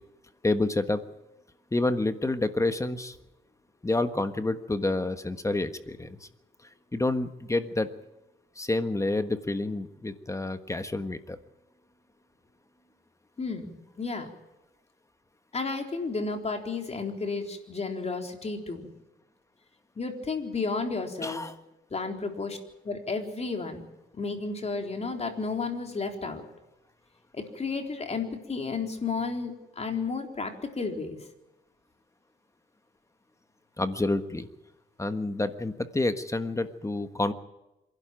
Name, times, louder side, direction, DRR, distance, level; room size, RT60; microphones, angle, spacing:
voice 1, 0.4-1.0 1.7-3.2 3.8-6.3 6.9-7.9 8.5-11.4 21.2-21.6 33.8-34.5 35.0-37.3, left 2 dB, 15° left, 10 dB, 1.4 m, -28 dB
voice 2, 13.4-14.3 15.5-18.9 20.0-21.4 21.9-22.6 22.8-23.8 24.1-26.4 27.5-30.5 30.8-31.2, left 4 dB, 35° left, 4 dB, 3.9 m, -32 dB
26.5 x 12.0 x 9.1 m, 0.98 s
cardioid pair, 90°, 20 cm